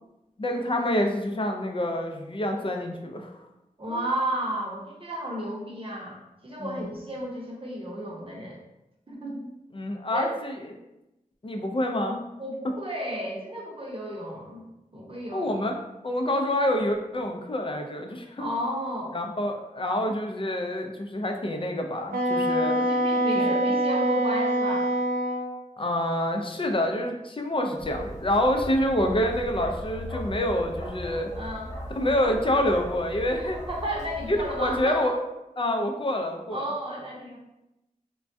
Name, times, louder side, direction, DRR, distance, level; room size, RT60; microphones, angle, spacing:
voice 1, 0.4-3.4 3.9-4.1 6.6-6.8 9.7-10.5 11.4-12.2 15.3-15.8 16.0-18.5 19.1-22.8 23.3-23.5 25.8-31.3 31.9-33.6 34.3-35.2 35.6-36.7, left 1 dB, 35° left, 3 dB, 0.4 m, -27 dB
voice 2, 3.8-6.2 6.4-8.6 9.1-9.5 10.1-10.4 12.4-14.6 14.9-15.6 18.4-19.2 22.8-24.9 31.3-31.7 33.4-35.0 36.5-37.4, equal, 40° right, -3 dB, 0.7 m, -33 dB
Wind instrument woodwind instrument, 22.1-25.5, right 1 dB, 75° right, 0.5 m, -24 dB
Bark, 27.8-34.8, equal, 20° left, 0.8 m, -38 dB
3.3 x 2.2 x 2.6 m, 0.92 s
wide cardioid pair, 55°, 15 cm